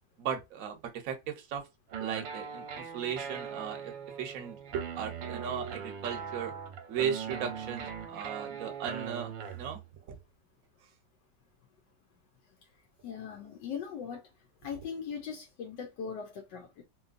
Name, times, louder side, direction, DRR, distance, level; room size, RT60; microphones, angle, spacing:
voice 1, 0.2-1.6 2.0-4.6 5.0-6.5 6.9-9.8 10.1-10.2, right 8 dB, 60° right, 1.0 m, -37 dB
sound 1, 1.9-9.9, right 7 dB, 80° right, 1.3 m, -40 dB
voice 2, 13.0-14.3 14.6-16.8, left 7 dB, 80° left, 1.2 m, -40 dB
3.0 x 3.0 x 2.4 m
omnidirectional pair, 2.0 m